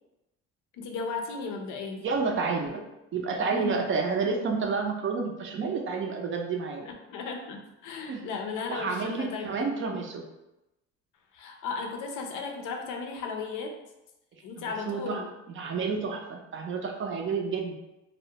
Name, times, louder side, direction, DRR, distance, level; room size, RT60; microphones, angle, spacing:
voice 1, 0.7-2.0 3.4-3.8 7.1-9.7 11.3-13.8 14.4-15.3, left 4 dB, 85° left, 3 dB, 0.5 m, -35 dB
voice 2, 2.0-2.8 3.1-6.9 8.1-8.4 8.7-10.2 14.6-15.2 15.5-17.7, right 4 dB, 40° right, 2 dB, 0.4 m, -30 dB
2.3 x 2.1 x 2.8 m, 0.94 s
cardioid pair, 105°, 30 cm